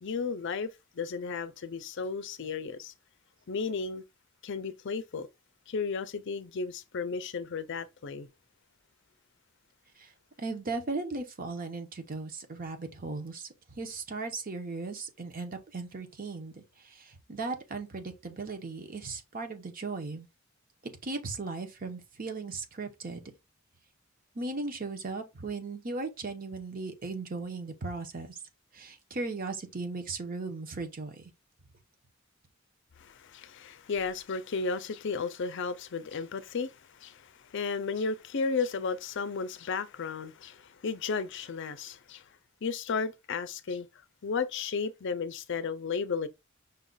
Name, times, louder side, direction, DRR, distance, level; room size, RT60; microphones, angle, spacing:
voice 1, 0.0-2.9 3.5-4.0 4.4-5.3 5.7-8.3 33.0-42.2 42.6-43.9 44.2-46.3, left 5 dB, 60° left, 0.5 m, -34 dB
voice 2, 10.4-13.5 13.8-20.3 21.0-23.3 24.3-28.4 28.7-31.2, right 3 dB, 45° right, 0.9 m, -37 dB
5.6 x 2.4 x 3.9 m
head